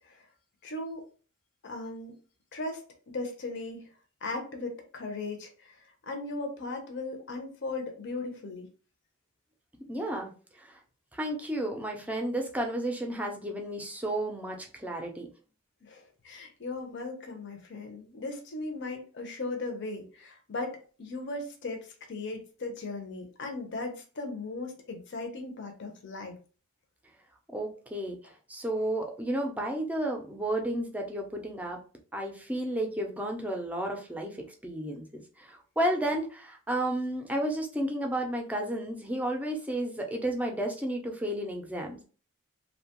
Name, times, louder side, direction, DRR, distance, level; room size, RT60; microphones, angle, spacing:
voice 1, 0.6-1.0 1.6-2.1 2.5-2.8 3.1-3.9 4.2-5.7 6.1-8.7 15.8-26.3, left 2 dB, 55° left, 3 dB, 0.6 m, -37 dB
voice 2, 9.9-10.3 10.6-10.8 11.1-15.3 27.5-31.8 32.1-42.1, right 1 dB, 5° right, 2 dB, 0.5 m, -32 dB
2.8 x 2.2 x 2.9 m, 0.38 s
head